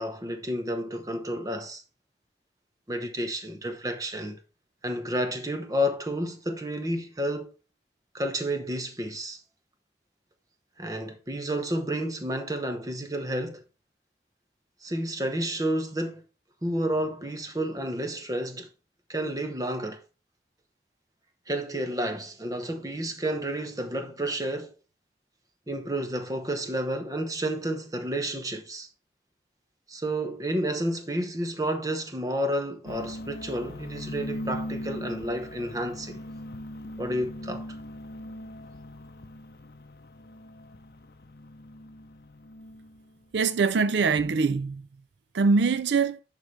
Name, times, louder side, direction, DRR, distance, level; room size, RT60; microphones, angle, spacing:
voice 1, 0.0-1.8 2.9-4.4 4.8-7.5 8.1-9.4 10.8-13.6 14.8-16.2 16.6-18.7 19.1-20.0 21.5-24.7 25.7-28.9 29.9-36.2 37.0-37.7, equal, 20° right, 0.9 m, -30 dB
sound 1, 32.8-43.1, left 1 dB, 55° left, 0.6 m, -40 dB
voice 2, 43.3-44.8 45.3-46.2, right 4 dB, 85° right, 0.5 m, -23 dB
11.0 x 3.8 x 3.2 m
head